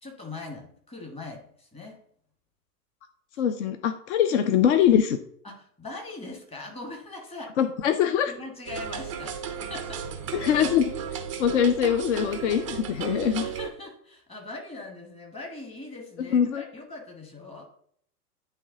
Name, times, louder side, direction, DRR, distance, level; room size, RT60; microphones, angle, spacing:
voice 1, 0.0-2.0 5.4-7.5 8.3-10.7 13.4-17.7, left 2 dB, 10° left, 1 dB, 1.4 m, -41 dB
voice 2, 3.4-5.2 7.6-8.3 10.3-10.9 11.4-13.4 16.3-16.6, left 9 dB, 45° left, 9 dB, 0.6 m, -23 dB
sound 1, 8.7-13.7, right 7 dB, 25° right, 0.4 m, -34 dB
9.1 x 3.2 x 3.7 m, 0.64 s
hypercardioid pair, 115°, 48 cm